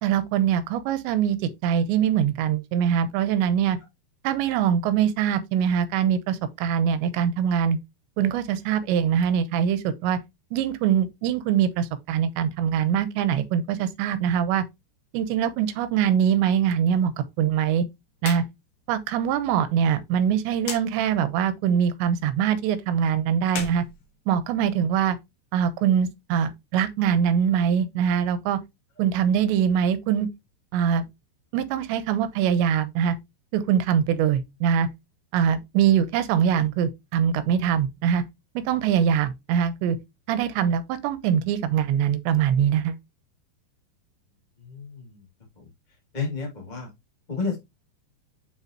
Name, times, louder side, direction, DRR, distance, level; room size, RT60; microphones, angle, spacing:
voice 1, 0.0-3.8 4.2-7.8 8.2-10.2 10.5-14.6 15.1-17.1 17.4-17.8 18.2-18.4 18.9-23.8 24.3-25.2 25.5-28.6 29.0-30.3 30.7-31.1 31.5-33.2 33.5-34.9 35.3-38.2 38.6-40.0 40.3-43.0, right 8 dB, 85° right, 3.1 m, -23 dB
sound 1, 18.2-18.5 18.8-18.9 20.6-20.9 23.4-24.7, left 6 dB, 60° left, 2.9 m, -35 dB
voice 2, 44.6-45.2 45.6-45.7 46.1-46.9 47.3-47.6, left 4 dB, 15° left, 1.4 m, -31 dB
7.5 x 5.8 x 2.9 m
omnidirectional pair, 5.1 m